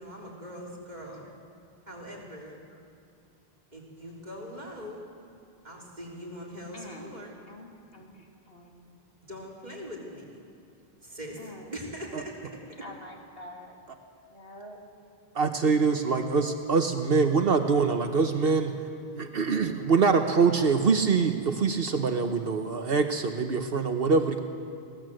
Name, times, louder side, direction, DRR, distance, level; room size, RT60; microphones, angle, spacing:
voice 1, 0.0-1.3 1.9-2.6 3.7-5.0 5.6-7.3 9.3-10.4 11.0-12.3, equal, 40° right, -3 dB, 3.9 m, -41 dB
voice 2, 6.7-7.1 7.5-8.2 8.5-8.9 11.4-11.6 12.1-12.2 12.8-13.7 14.3-14.8 19.5-19.6, left 1 dB, 65° left, 0 dB, 3.0 m, -46 dB
voice 3, 15.3-18.7 19.1-24.4, right 5 dB, 65° right, 6 dB, 1.2 m, -24 dB
23.5 x 17.0 x 7.7 m, 2.5 s
omnidirectional pair, 1.1 m